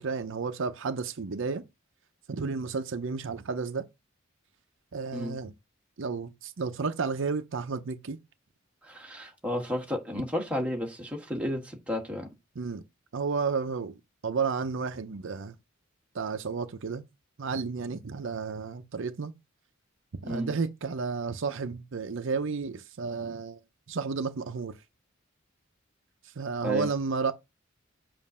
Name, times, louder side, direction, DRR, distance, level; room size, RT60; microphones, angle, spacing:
voice 1, 0.0-1.6 2.3-3.9 4.9-5.5 6.0-8.2 12.6-12.8 13.1-13.9 14.2-15.6 16.1-17.0 17.4-19.3 20.2-23.6 23.9-24.7 26.2-27.3, right 4 dB, 65° right, 0.6 m, -32 dB
voice 2, 8.8-12.3 20.2-20.5 26.6-26.9, left 1 dB, 5° right, 1.3 m, -32 dB
7.3 x 2.6 x 5.5 m
head